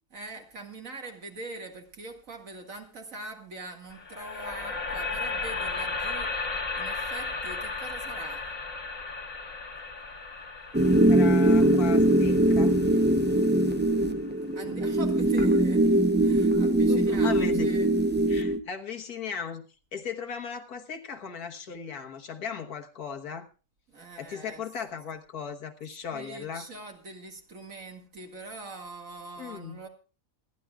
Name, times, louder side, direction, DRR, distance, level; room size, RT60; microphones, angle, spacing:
voice 1, 0.1-6.3 6.8-8.5 14.6-17.9 23.9-24.6 26.1-29.9, right 2 dB, 60° right, 2.4 m, -43 dB
sound 1, 3.9-14.0, left 3 dB, 60° left, 2.1 m, -35 dB
sound 2, 10.7-18.6, right 1 dB, 15° right, 0.3 m, -22 dB
voice 2, 11.1-12.8 16.9-17.7 18.3-19.7 19.9-23.5 24.2-26.7 29.4-29.8, left 6 dB, 80° left, 1.8 m, -37 dB
26.5 x 11.0 x 2.4 m
omnidirectional pair, 1.6 m